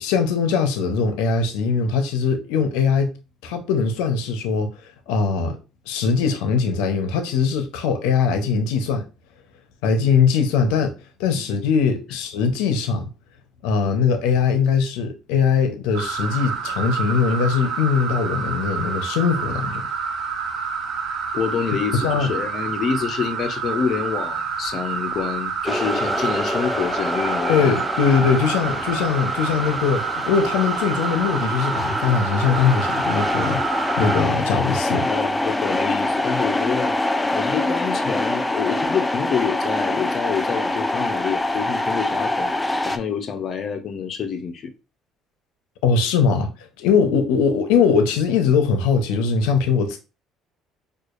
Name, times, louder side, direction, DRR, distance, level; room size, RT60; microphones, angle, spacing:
voice 1, 0.0-3.2 3.4-4.7 5.1-5.6 5.9-9.1 9.8-10.9 11.2-13.1 13.6-19.8 21.9-22.3 27.5-35.1 45.8-46.5 46.8-50.0, left 6 dB, 90° left, 0.6 m, -21 dB
sound 1, 15.9-34.2, right 6 dB, 65° right, 1.0 m, -28 dB
voice 2, 21.3-27.8 35.1-37.0 37.3-42.5 42.8-44.7, left 7 dB, 50° left, 0.6 m, -27 dB
sound 2, 25.7-43.0, left 2 dB, 10° left, 0.3 m, -25 dB
4.6 x 2.4 x 2.4 m
cardioid pair, 105°, 0 cm